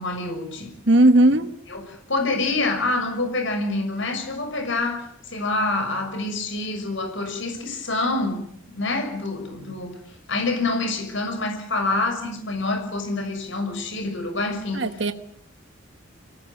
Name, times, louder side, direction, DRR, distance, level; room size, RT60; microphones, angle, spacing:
voice 1, 0.0-0.7 1.7-8.5 8.7-10.0 10.3-14.9, left 2 dB, 60° left, 6.3 m, -26 dB
voice 2, 0.9-1.5 14.7-15.1, right 1 dB, 55° right, 1.4 m, -17 dB
25.0 x 19.0 x 8.5 m
head